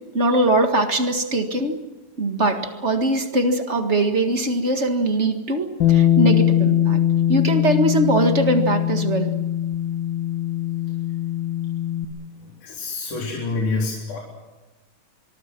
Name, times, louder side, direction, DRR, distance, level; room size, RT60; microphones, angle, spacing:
voice 1, 0.1-1.8 2.2-7.0 7.3-9.3, right 1 dB, 30° right, 6 dB, 1.4 m, -21 dB
Bass guitar, 5.8-12.1, left 11 dB, 45° left, 1.8 m, -21 dB
voice 2, 12.4-14.2, left 3 dB, 70° left, -3 dB, 5.1 m, -27 dB
24.5 x 23.5 x 6.1 m, 1.1 s
omnidirectional pair, 3.6 m